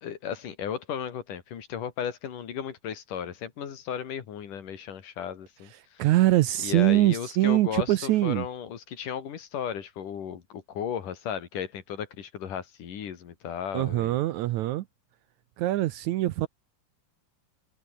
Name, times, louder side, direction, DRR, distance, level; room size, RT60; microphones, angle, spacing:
voice 1, 0.0-6.1 6.6-14.2, left 8 dB, 70° left, 3.9 m, -35 dB
voice 2, 6.0-8.5 13.7-14.9 15.6-16.5, right 16 dB, 75° right, 1.9 m, -23 dB
omnidirectional pair, 3.8 m